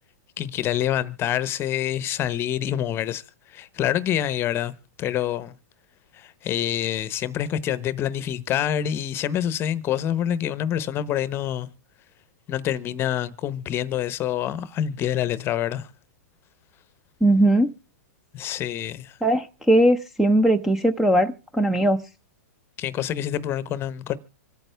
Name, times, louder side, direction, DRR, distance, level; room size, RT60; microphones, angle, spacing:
voice 1, 0.4-3.2 3.5-5.5 6.1-11.7 12.5-15.9 18.3-19.2 22.8-24.2, left 11 dB, 30° left, 0.8 m, -26 dB
voice 2, 17.2-17.7 19.2-22.0, right 1 dB, 5° right, 0.6 m, -19 dB
26.0 x 9.0 x 3.3 m
hypercardioid pair, 130°, 9 cm